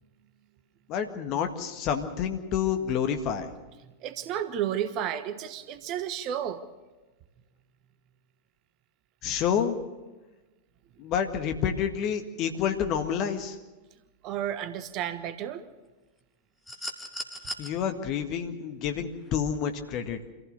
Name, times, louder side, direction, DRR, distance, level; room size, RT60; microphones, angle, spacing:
voice 1, 0.9-3.5 9.2-9.8 11.0-13.6 17.6-20.2, left 8 dB, 40° left, 6 dB, 1.7 m, -29 dB
voice 2, 4.0-6.6 14.2-15.6, right 10 dB, 40° right, 11 dB, 1.3 m, -32 dB
sound 1, 16.7-17.7 19.2-19.3, equal, 5° left, 2.3 m, -37 dB
25.5 x 15.5 x 6.7 m, 1.2 s
figure-of-eight pair, 90°, 0 cm